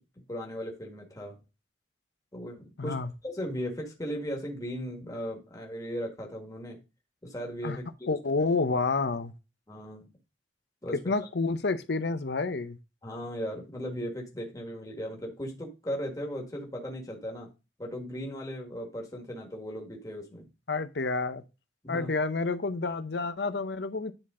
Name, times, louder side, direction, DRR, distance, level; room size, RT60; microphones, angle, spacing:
voice 1, 0.3-1.4 2.3-3.0 3.2-6.8 7.2-8.1 9.7-10.1 10.8-11.1 13.0-17.5 17.8-20.5 21.8-22.1, equal, 20° left, 1.6 m, -37 dB
voice 2, 2.8-3.1 7.6-7.8 8.1-9.3 11.1-12.8 20.7-21.4 21.9-24.1, left 3 dB, 70° left, 0.7 m, -29 dB
10.0 x 4.1 x 3.7 m
head